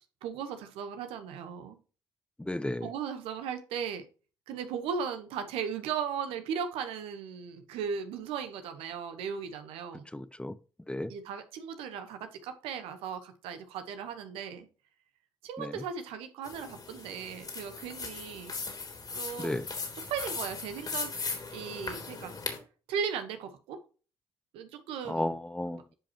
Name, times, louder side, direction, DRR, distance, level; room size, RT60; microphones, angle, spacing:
voice 1, 0.2-1.8 2.8-4.0 4.5-10.1 11.1-14.7 15.4-18.6 19.1-19.6 20.1-21.1 21.5-22.3 22.9-23.8 24.5-25.3 25.7-25.9, right 7 dB, 80° right, 1.2 m, -37 dB
voice 2, 2.4-2.9 10.1-10.6 10.9-11.1 15.6-15.8 19.4-19.7 25.0-25.8, left 1 dB, 10° left, 0.7 m, -33 dB
sound 1, 16.4-22.6, left 4 dB, 45° left, 3.0 m, -38 dB
10.0 x 5.2 x 3.0 m
hypercardioid pair, 50°, 10 cm